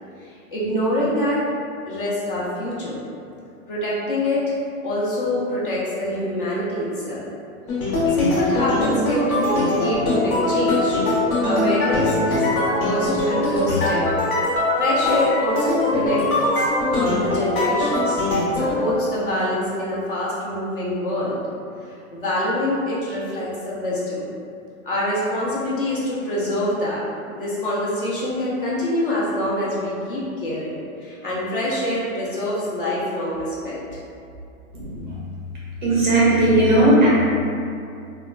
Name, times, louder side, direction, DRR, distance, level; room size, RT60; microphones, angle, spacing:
voice 1, 0.2-1.4 1.9-3.0 3.7-4.6 4.8-7.3 8.1-11.0 11.4-14.1 14.8-16.3 16.6-18.2 18.5-21.4 22.1-24.3 24.8-27.0 27.3-34.0, left 1 dB, 40° left, -7 dB, 0.5 m, -25 dB
sound 1, 7.7-18.8, left 2 dB, 70° left, 1.0 m, -21 dB
voice 2, 35.8-37.1, right 1 dB, 35° right, -7 dB, 0.4 m, -16 dB
2.9 x 2.2 x 2.3 m, 2.5 s
hypercardioid pair, 165°, 43 cm